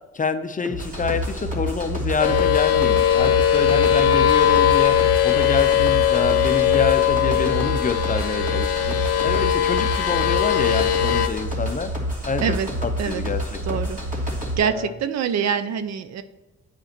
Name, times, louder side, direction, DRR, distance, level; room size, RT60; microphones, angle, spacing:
voice 1, 0.0-5.0 5.2-9.0 9.2-11.9 12.3-12.6 12.8-13.8 14.6-14.9, left 4 dB, 25° left, 10 dB, 0.6 m, -27 dB
sound 1, 0.6-14.6, equal, 25° right, 2.7 m, -28 dB
sound 2, 2.2-11.3, left 10 dB, 55° left, 1.0 m, -20 dB
voice 2, 13.7-14.0 14.6-16.2, right 7 dB, 60° right, 12 dB, 0.6 m, -24 dB
9.0 x 5.2 x 4.4 m, 1.2 s
cardioid pair, 90°, 30 cm